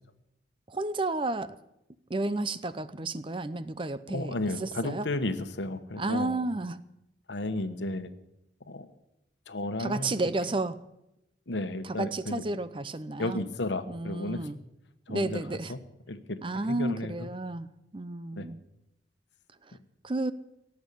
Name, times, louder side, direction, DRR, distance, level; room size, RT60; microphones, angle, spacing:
voice 1, 0.7-1.5 2.1-4.3 4.6-5.1 6.0-6.8 9.8-10.8 12.0-13.4 13.9-14.6 15.1-15.7 16.4-17.7 17.9-18.6 20.0-20.3, right 2 dB, 30° right, 14 dB, 0.6 m, -31 dB
voice 2, 4.1-6.4 7.3-8.1 8.7-8.9 9.5-10.1 11.5-12.4 13.2-14.5 15.1-15.8 16.1-17.3 18.4-18.5, left 2 dB, 85° left, 10 dB, 1.2 m, -33 dB
18.0 x 7.3 x 9.9 m, 0.87 s
head